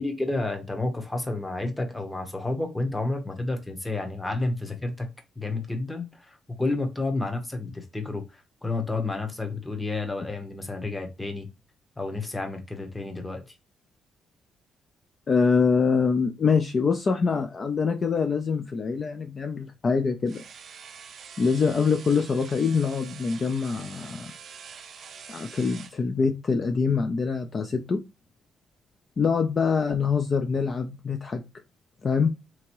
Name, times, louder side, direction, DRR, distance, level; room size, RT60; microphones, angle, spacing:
voice 1, 0.0-5.1 5.4-8.2 8.6-11.5 12.0-13.4, left 2 dB, 15° left, 0.9 m, -30 dB
voice 2, 15.3-20.4 21.4-24.3 25.3-28.0 29.2-31.4 32.0-32.3, left 5 dB, 40° left, 0.4 m, -24 dB
sound 1, 20.3-26.0, right 6 dB, 55° right, 0.5 m, -45 dB
3.5 x 2.9 x 2.9 m
cardioid pair, 90°, 0 cm